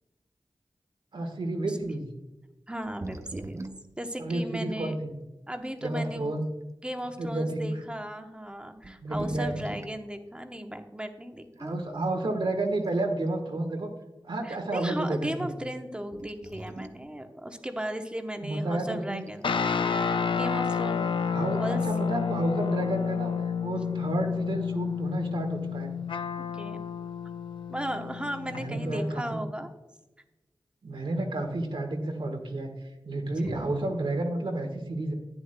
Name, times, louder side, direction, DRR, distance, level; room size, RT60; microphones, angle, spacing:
voice 1, 1.1-2.0 4.2-5.1 5.8-6.4 7.2-7.7 9.0-9.5 11.6-13.9 14.2-15.5 18.4-19.2 21.3-23.3 23.6-25.9 28.5-29.4 30.8-32.7 33.0-35.1, right 2 dB, 75° right, 4 dB, 1.4 m, -31 dB
voice 2, 2.7-3.6 4.0-5.0 5.5-6.4 6.8-12.0 14.4-19.8 20.4-21.1 21.5-21.8 26.5-26.8 27.7-29.7 33.4-33.6, equal, 10° right, 6 dB, 0.9 m, -36 dB
sound 1, 2.8-4.0 4.8-4.9 5.6-6.2 7.0-7.2 8.1-8.2 8.8-10.0 11.7-11.8 12.6-13.4 13.7-13.8 16.1-17.1 19.1-19.7, right 2 dB, 35° right, 0.6 m, -42 dB
sound 2, 19.4-29.1, left 6 dB, 80° left, 0.5 m, -30 dB
11.5 x 9.5 x 2.2 m, 1.0 s
wide cardioid pair, 70°, 8 cm